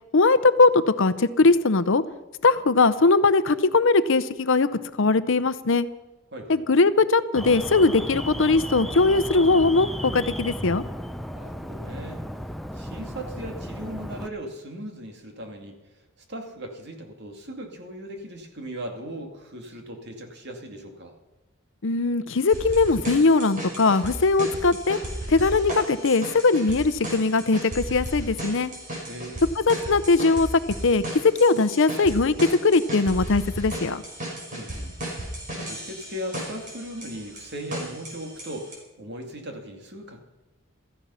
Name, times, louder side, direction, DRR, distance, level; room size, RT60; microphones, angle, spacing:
voice 1, 0.1-2.0 2.4-4.7 5.0-5.9 6.5-10.8 21.8-25.0 25.3-28.7 29.6-34.0, left 3 dB, 65° left, 14 dB, 0.8 m, -20 dB
voice 2, 6.3-6.7 11.3-12.3 12.7-15.9 16.3-21.1 29.1-29.4 34.5-35.0 35.7-40.2, equal, 55° right, 3 dB, 2.4 m, -38 dB
Alarm, 7.4-14.3, equal, ahead, 0.6 m, -34 dB
sound 1, 22.5-38.7, right 1 dB, 40° right, 5.6 m, -35 dB
16.5 x 14.0 x 5.7 m, 1.1 s
head